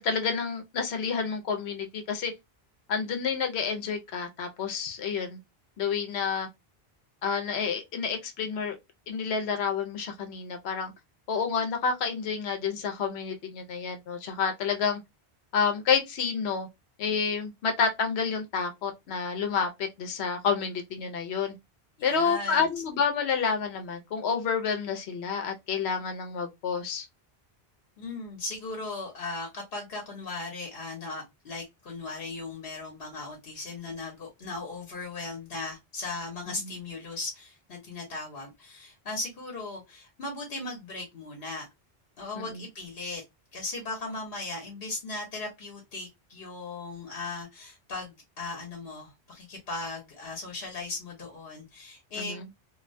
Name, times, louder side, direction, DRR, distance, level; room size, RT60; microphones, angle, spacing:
voice 1, 0.0-2.3 2.9-5.4 5.8-6.5 7.2-8.7 9.1-10.9 11.3-15.0 15.5-16.7 17.0-21.5 22.0-27.1 36.6-36.7 42.3-42.6 52.2-52.5, left 6 dB, 90° left, 0.9 m, -29 dB
voice 2, 22.0-22.7 28.0-41.7 42.2-43.2 43.5-52.5, left 3 dB, 65° left, 1.0 m, -37 dB
2.5 x 2.1 x 2.5 m
omnidirectional pair, 1.1 m